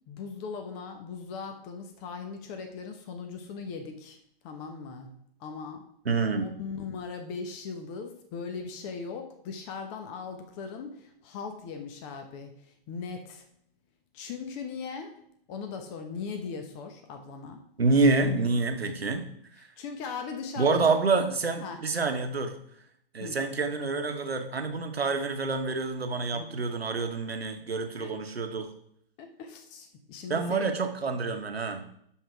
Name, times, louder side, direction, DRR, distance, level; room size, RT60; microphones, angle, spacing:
voice 1, 0.1-4.2 4.4-5.8 6.3-13.4 14.1-15.2 15.5-17.6 19.8-21.0 21.6-21.8 23.2-23.4 26.3-26.7 28.0-28.1 29.2-30.7, left 5 dB, 30° left, 6 dB, 1.1 m, -39 dB
voice 2, 6.0-6.5 17.8-19.3 19.6-19.7 20.6-22.5 23.1-28.7 30.3-31.9, right 3 dB, 80° right, 6 dB, 1.3 m, -27 dB
11.5 x 3.9 x 4.7 m, 0.70 s
figure-of-eight pair, 120°, 30 cm